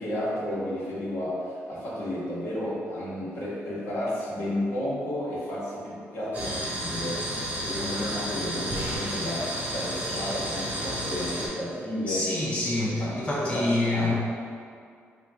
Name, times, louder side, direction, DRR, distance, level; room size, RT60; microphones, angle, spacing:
voice 1, 0.0-12.3 12.7-14.1, left 1 dB, 60° left, -8 dB, 1.3 m, -32 dB
sound 1, 6.3-11.5, equal, 35° right, 1.2 m, -32 dB
voice 2, 12.1-14.1, left 2 dB, 25° left, -6 dB, 0.5 m, -26 dB
3.2 x 2.6 x 3.4 m, 2.3 s
cardioid pair, 90°, 5 cm